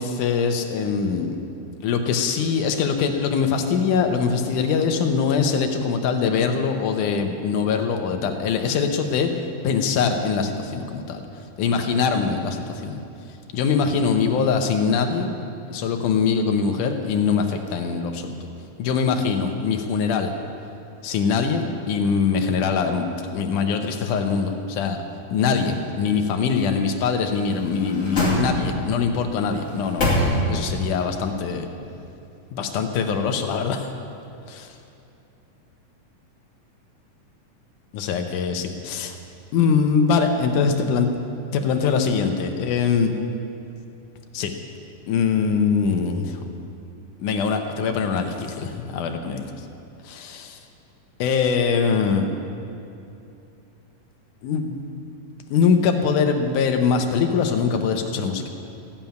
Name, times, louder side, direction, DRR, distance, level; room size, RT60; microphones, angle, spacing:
voice 1, 0.0-1.4 1.8-9.3 9.6-11.2 11.6-13.0 13.5-15.3 15.7-18.4 18.8-20.3 21.0-25.0 25.3-30.2 30.5-31.7 32.5-33.8 34.5-34.7 37.9-39.2 39.5-41.1 41.5-43.1 44.3-44.5 45.1-46.4 47.2-49.4 50.0-50.6 51.2-52.3 54.4-54.9 55.5-58.5, left 5 dB, 75° left, 5 dB, 2.3 m, -22 dB
sound 1, 27.3-29.0 29.5-30.8 31.2-31.3, left 1 dB, 25° left, 2.6 m, -24 dB
14.5 x 7.2 x 9.2 m, 2.7 s
omnidirectional pair, 3.7 m